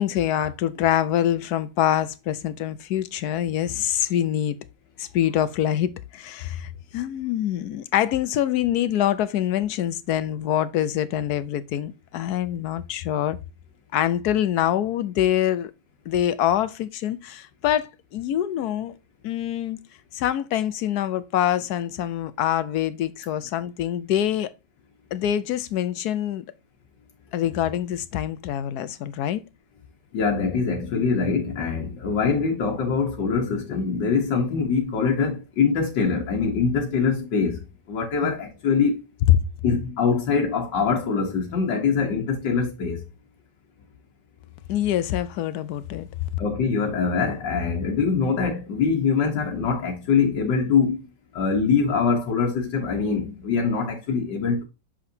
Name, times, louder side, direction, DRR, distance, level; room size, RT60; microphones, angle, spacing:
voice 1, 0.0-4.6 5.0-13.4 13.9-15.7 16.1-18.9 19.2-19.8 20.1-24.5 25.1-26.4 27.3-29.4 38.2-38.3 39.3-39.4 44.7-46.1, left 11 dB, 70° left, 1.1 m, -25 dB
voice 2, 30.1-39.0 39.6-43.0 46.4-51.1 51.3-54.6, left 5 dB, 85° left, 1.9 m, -23 dB
6.3 x 5.8 x 2.7 m
omnidirectional pair, 1.9 m